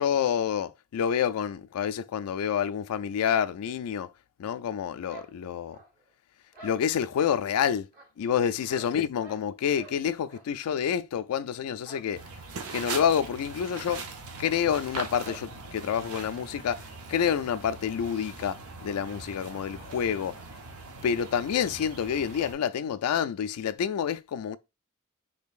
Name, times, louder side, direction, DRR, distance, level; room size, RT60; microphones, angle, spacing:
voice 1, 0.0-4.1 4.4-5.8 6.6-7.9 8.2-12.2 12.7-14.0 14.4-16.8 17.1-20.4 21.0-24.6, left 8 dB, 80° left, 0.3 m, -28 dB
sound 1, 5.1-6.1 6.5-7.4 7.9-9.5 9.7-10.0 10.3-10.5 10.8-10.9 11.8-12.1 12.4-12.5 12.9-13.0 13.8-13.9 14.2-14.3 15.2-15.5 16.1-16.3, right 2 dB, 45° right, 1.5 m, -49 dB
sound 2, 12.2-22.5, right 4 dB, 75° right, 0.6 m, -41 dB
3.7 x 3.4 x 2.4 m
head